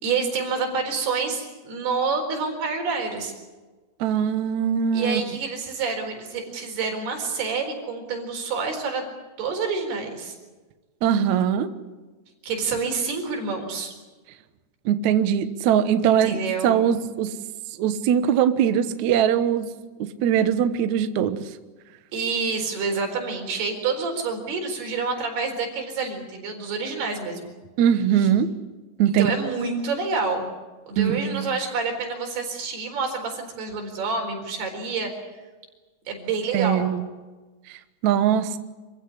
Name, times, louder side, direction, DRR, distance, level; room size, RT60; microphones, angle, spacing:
voice 1, 0.0-3.3 4.9-9.1 9.4-10.4 12.4-13.9 16.0-16.8 22.1-27.5 28.2-28.3 29.1-30.5 30.9-35.1 36.1-36.9, right 4 dB, 60° right, 3 dB, 6.1 m, -28 dB
voice 2, 4.0-5.2 11.0-11.7 14.8-17.3 17.8-19.7 20.2-21.4 27.8-28.5 29.0-29.3 31.0-31.5 36.5-37.1 37.7-37.8 38.0-38.6, right 9 dB, 80° right, 10 dB, 1.6 m, -21 dB
27.0 x 15.5 x 9.8 m, 1.2 s
omnidirectional pair, 5.2 m